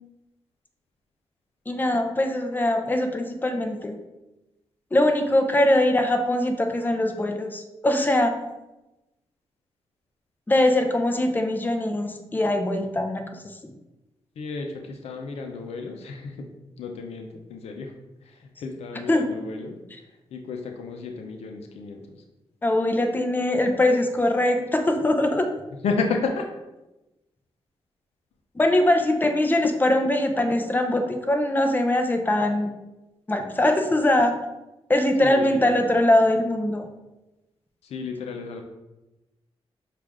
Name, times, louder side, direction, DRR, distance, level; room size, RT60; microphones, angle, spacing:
voice 1, 1.7-4.0 4.9-8.4 10.5-13.2 13.6-13.7 19.1-19.3 22.6-25.5 28.6-32.7 33.3-34.4 34.9-36.9, left 1 dB, 20° left, 5 dB, 0.6 m, -22 dB
voice 2, 14.4-16.5 16.8-17.9 18.2-22.2 25.8-26.4 35.2-35.8 37.8-38.6, left 4 dB, 85° left, 3 dB, 0.6 m, -32 dB
6.1 x 2.5 x 3.5 m, 0.99 s
cardioid pair, 80°, 10 cm